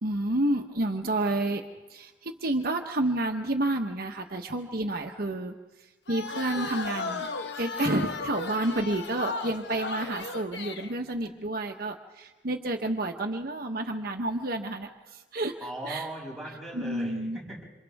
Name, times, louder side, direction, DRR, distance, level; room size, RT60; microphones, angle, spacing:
voice 1, 0.0-1.6 1.9-5.5 6.1-7.3 7.6-15.5 15.8-16.1 16.7-17.4, right 1 dB, 60° right, 4 dB, 1.2 m, -30 dB
sound 1, 6.1-10.9, left 4 dB, 70° left, 1.3 m, -35 dB
voice 2, 15.6-17.6, right 1 dB, ahead, -4 dB, 7.2 m, -38 dB
28.5 x 27.0 x 3.6 m, 1.2 s
head